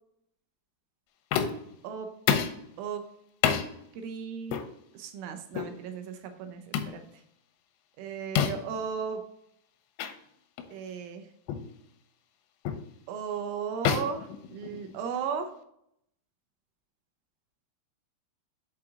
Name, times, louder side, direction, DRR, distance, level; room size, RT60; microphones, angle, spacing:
sound 1, 1.3-1.7 2.3-2.6 3.4-3.7 4.5-4.7 5.5-5.7 6.7-7.0 8.4-8.7 10.0-10.1 10.6-10.7 11.5-11.7 12.6-12.9 13.8-15.1, left 8 dB, 80° left, 2.7 m, -28 dB
voice 1, 3.9-4.6 4.9-7.0 8.0-9.2 10.7-11.2 13.1-15.5, right 7 dB, 85° right, 6 dB, 3.2 m, -35 dB
7.3 x 4.7 x 3.6 m, 0.74 s
omnidirectional pair, 5.5 m